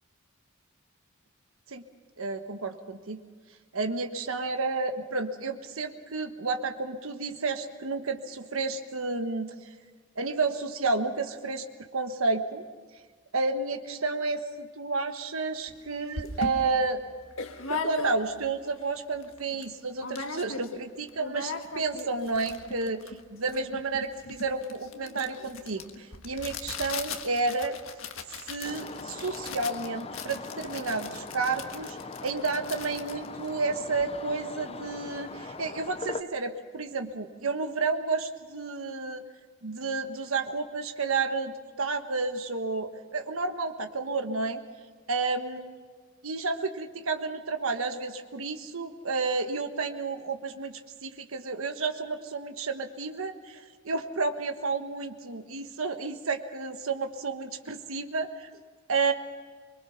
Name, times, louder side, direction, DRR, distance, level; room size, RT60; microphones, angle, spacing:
voice 1, 2.2-3.2 3.7-9.5 10.2-11.6 11.9-12.7 13.3-17.0 17.7-23.0 23.4-27.8 28.5-39.2 39.6-44.6 45.1-45.7 46.2-58.5 58.9-59.1, right 3 dB, 90° right, 6 dB, 1.3 m, -31 dB
sound 1, 15.7-15.8 16.1-18.5 18.9-19.0 19.2-19.7 20.0-20.8 21.1-34.1, left 4 dB, 75° left, 1.5 m, -39 dB
sound 2, 28.6-36.2, left 3 dB, 30° left, 0.7 m, -40 dB
24.0 x 22.5 x 5.9 m, 1.5 s
head